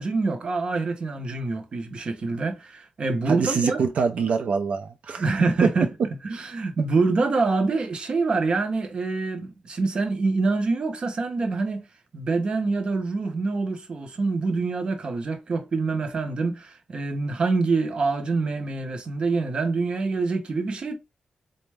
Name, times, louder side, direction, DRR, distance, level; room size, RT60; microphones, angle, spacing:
voice 1, 0.0-3.8 5.2-5.9 6.2-11.9 12.1-20.9, right 3 dB, 40° right, 0.7 m, -25 dB
voice 2, 3.3-5.3, right 5 dB, 80° right, 0.4 m, -25 dB
3.9 x 2.1 x 3.3 m
wide cardioid pair, 175°, 2 cm